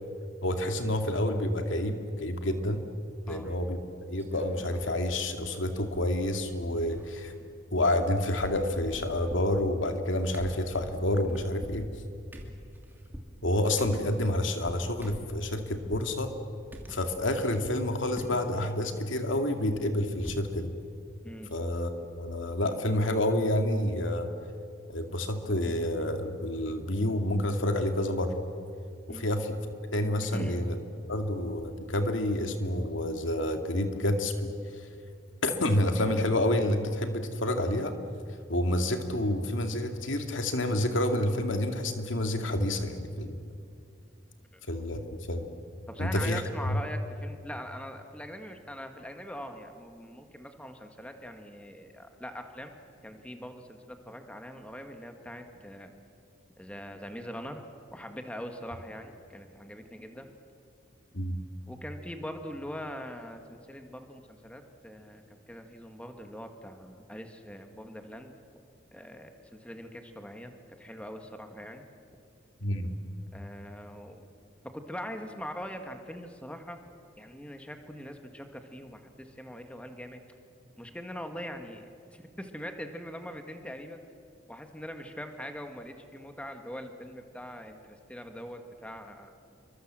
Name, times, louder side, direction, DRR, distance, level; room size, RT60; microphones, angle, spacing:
voice 1, 0.4-2.8 3.3-7.3 7.7-11.8 13.4-16.3 16.9-20.7 21.5-24.3 24.9-28.4 29.1-29.6 29.9-30.8 31.1-34.5 35.4-37.9 38.5-43.4 44.7-45.5 46.0-46.8 61.1-61.4 72.6-72.9, left 1 dB, 80° left, 5 dB, 2.3 m, -29 dB
sound 1, 3.4-3.8 4.2-5.0 5.3-5.4 5.6-6.5 6.7-8.1 8.4-16.1 16.7-17.9 18.2-18.6 19.0-20.6 20.9-21.0 21.3-21.5, equal, 10° right, 2.8 m, -45 dB
voice 2, 45.9-52.7 53.0-55.9 56.6-60.3 61.7-68.3 68.9-69.3 69.6-70.5 70.8-71.8 73.3-74.3 74.6-76.8 77.2-80.2 80.8-84.0 84.5-89.3, equal, 5° left, 5 dB, 1.8 m, -42 dB
28.0 x 24.0 x 7.7 m, 2.4 s
head